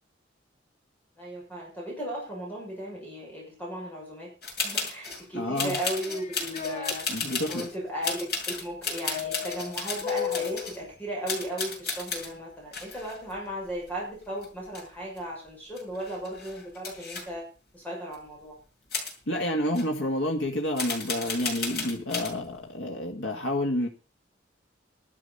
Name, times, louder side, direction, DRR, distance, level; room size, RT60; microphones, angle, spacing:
voice 1, 1.1-4.3 4.6-7.2 7.5-17.4 17.7-18.6, equal, 10° left, -3 dB, 6.8 m, -36 dB
sound 1, 4.4-5.2 5.6-7.7 8.0-10.8 11.3-12.3 12.7-14.2 14.4-15.2 15.5-15.6 15.8-17.2 18.1-18.2 18.9-19.1 19.7-19.8 20.8-22.3, left 4 dB, 55° left, 6.4 m, -34 dB
voice 2, 5.3-5.8 7.1-7.7 19.3-23.9, left 1 dB, 85° left, 1 dB, 1.9 m, -29 dB
sound 2, 5.7-7.0 9.1-10.8, left 8 dB, 40° left, 0.8 m, -34 dB
12.5 x 12.5 x 5.6 m, 0.36 s
head